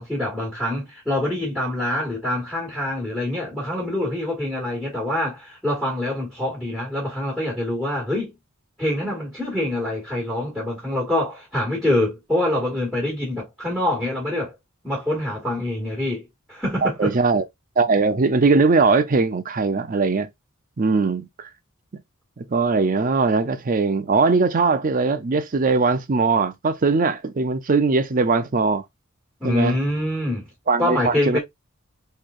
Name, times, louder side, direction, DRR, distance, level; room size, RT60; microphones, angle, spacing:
voice 1, 0.0-8.3 8.8-14.5 14.8-16.2 16.5-17.1 29.4-30.5 30.8-31.4, left 1 dB, ahead, 1.6 m, -25 dB
voice 2, 16.8-17.4 17.8-20.3 20.8-21.5 22.4-28.8 29.4-29.8 30.7-31.4, right 4 dB, 40° right, 0.5 m, -20 dB
3.7 x 3.2 x 2.5 m
head